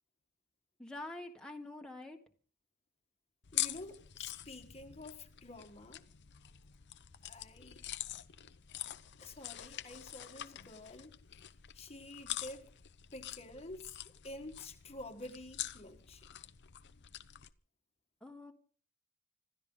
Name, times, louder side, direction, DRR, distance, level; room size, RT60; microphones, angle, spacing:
voice 1, 0.8-2.2 18.2-18.5, left 2 dB, 5° left, 1.6 m, -46 dB
sound 1, 3.4-17.5, left 13 dB, 55° left, 0.8 m, -45 dB
voice 2, 3.5-6.0 7.2-7.8 9.2-11.2 11.7-12.7 13.1-16.3, left 2 dB, 30° left, 1.5 m, -49 dB
26.0 x 13.0 x 3.9 m
head